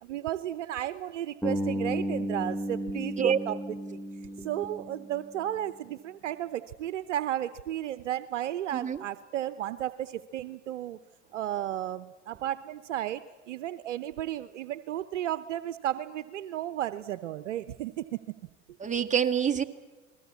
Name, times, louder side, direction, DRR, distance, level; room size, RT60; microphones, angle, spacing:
voice 1, 0.0-3.6 3.9-4.0 4.4-11.0 11.3-18.4, right 12 dB, 75° right, 14 dB, 0.9 m, -34 dB
Bass guitar, 1.4-5.5, equal, 5° left, 2.2 m, -34 dB
voice 2, 8.7-9.0 18.8-19.6, right 8 dB, 20° right, 5 dB, 1.9 m, -26 dB
28.5 x 20.0 x 8.3 m, 1.2 s
hypercardioid pair, 85°, 36 cm